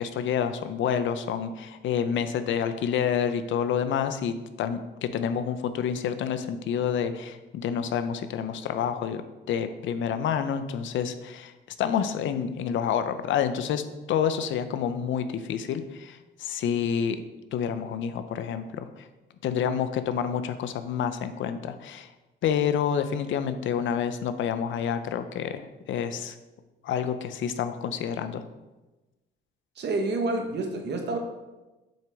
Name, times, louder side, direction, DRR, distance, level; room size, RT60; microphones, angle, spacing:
voice 1, 0.0-9.2 9.5-11.5 11.8-13.8 14.1-17.2 17.5-19.1 19.4-22.1 22.4-26.4 26.8-28.4, left 8 dB, 75° left, 10 dB, 0.6 m, -28 dB
voice 2, 29.8-31.2, right 2 dB, 60° right, 4 dB, 1.2 m, -28 dB
7.2 x 5.9 x 3.6 m, 1.1 s
cardioid pair, 90°, 20 cm